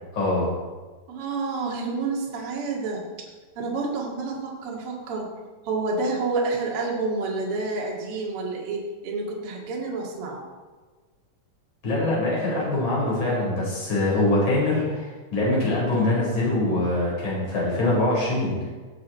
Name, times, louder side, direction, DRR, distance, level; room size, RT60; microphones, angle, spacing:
voice 1, 0.1-0.6 11.8-18.7, left 2 dB, 30° left, -5 dB, 5.1 m, -23 dB
voice 2, 1.1-3.0 3.6-5.3 5.6-10.5, right 3 dB, 45° right, -2 dB, 2.4 m, -29 dB
17.5 x 7.9 x 4.3 m, 1.4 s
omnidirectional pair, 4.4 m